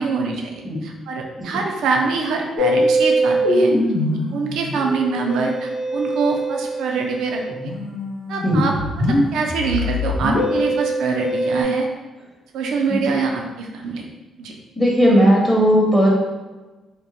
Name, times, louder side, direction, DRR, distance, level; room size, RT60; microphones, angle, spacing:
voice 1, 0.0-0.5 0.8-3.7 4.3-7.7 8.3-11.9 12.5-14.1 14.4-14.6, right 4 dB, 80° right, 1 dB, 0.4 m, -24 dB
Musical instrument, 2.6-11.6, equal, 90° left, 1.0 m, -22 dB
voice 2, 14.8-16.1, equal, 5° left, -4 dB, 0.7 m, -16 dB
2.9 x 2.2 x 2.5 m, 1.2 s
cardioid pair, 90°, 0 cm